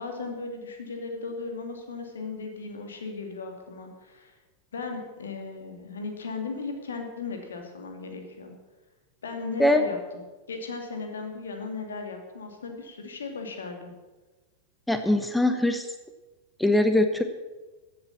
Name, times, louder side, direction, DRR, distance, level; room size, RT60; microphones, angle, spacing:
voice 1, 0.0-4.3 4.7-8.5 9.2-10.0 10.5-13.9, left 4 dB, 65° left, 4 dB, 2.5 m, -36 dB
voice 2, 14.9-15.8 16.6-17.2, left 1 dB, 5° left, 8 dB, 0.9 m, -22 dB
15.5 x 8.1 x 7.2 m, 1.2 s
figure-of-eight pair, 90°, 0 cm